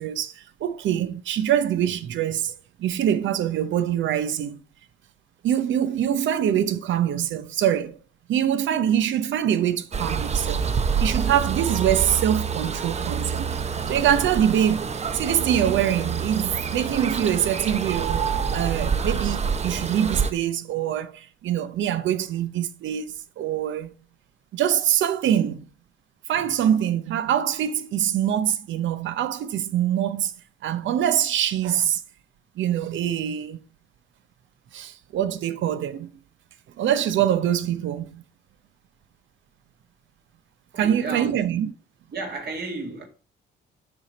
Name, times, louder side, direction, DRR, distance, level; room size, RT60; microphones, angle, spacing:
voice 1, 0.0-2.5 2.8-4.6 5.4-8.0 8.3-10.7 11.0-13.6 13.9-23.9 24.5-25.6 26.3-30.3 30.6-32.0 32.6-33.6 34.7-36.1 36.8-38.2 40.8-41.7, right 10 dB, 75° right, 0.7 m, -24 dB
sound 1, 9.9-20.3, right 6 dB, 35° right, 0.7 m, -27 dB
voice 2, 40.7-41.4 42.1-43.1, right 3 dB, 55° right, 2.0 m, -32 dB
7.0 x 5.1 x 4.1 m
cardioid pair, 90°, 20 cm